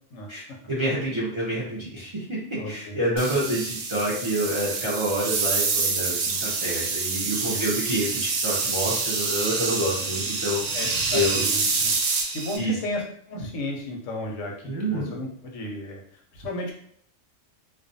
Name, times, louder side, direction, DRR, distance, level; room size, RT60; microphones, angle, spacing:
voice 1, 0.3-11.4 12.6-12.7 14.6-15.1, right 1 dB, 45° right, -7 dB, 0.4 m, -28 dB
voice 2, 2.6-3.0 7.5-7.7 10.7-11.9 12.3-16.7, left 1 dB, 85° left, 0 dB, 1.0 m, -34 dB
sound 1, 3.2-12.6, right 4 dB, 85° right, 0.9 m, -27 dB
2.4 x 2.2 x 2.6 m, 0.62 s
omnidirectional pair, 1.3 m